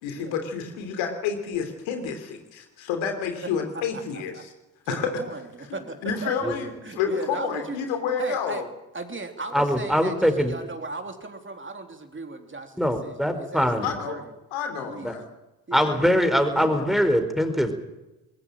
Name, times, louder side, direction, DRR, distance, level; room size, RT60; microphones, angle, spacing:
voice 1, 0.0-4.3 4.9-5.1 6.0-6.7 7.0-8.6 13.8-14.2 14.5-15.2 15.7-16.9, left 6 dB, 70° left, 6 dB, 3.4 m, -29 dB
voice 2, 4.8-6.5 6.8-7.8 8.2-8.6 8.9-14.3 14.8-15.2 15.7-15.9, right 3 dB, 25° right, 5 dB, 3.5 m, -37 dB
voice 3, 9.5-10.5 12.8-13.9 15.0-15.1 15.7-17.7, equal, ahead, 7 dB, 4.4 m, -22 dB
21.5 x 18.5 x 9.0 m, 1.0 s
hypercardioid pair, 45°, 48 cm